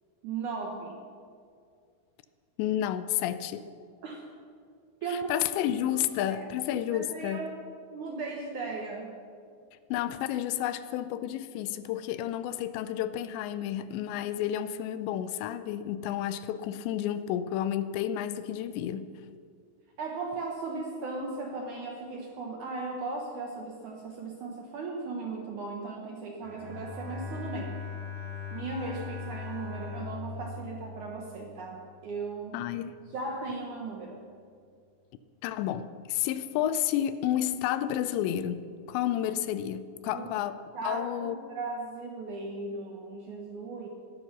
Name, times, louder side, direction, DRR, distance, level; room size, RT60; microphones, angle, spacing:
voice 1, 0.2-1.0 4.0-4.3 5.0-5.5 5.9-7.6 7.9-9.2 20.0-27.8 28.5-32.6 33.1-34.3 40.1-40.3 40.7-43.9, right 3 dB, 80° right, 0 dB, 1.7 m, -37 dB
voice 2, 2.6-3.7 5.1-7.4 9.9-19.1 32.5-33.0 35.4-41.4, left 11 dB, 80° left, 12 dB, 2.7 m, -31 dB
Bowed string instrument, 26.4-31.7, left 4 dB, 55° right, 4.4 m, -39 dB
15.5 x 13.0 x 6.0 m, 2.2 s
omnidirectional pair, 5.4 m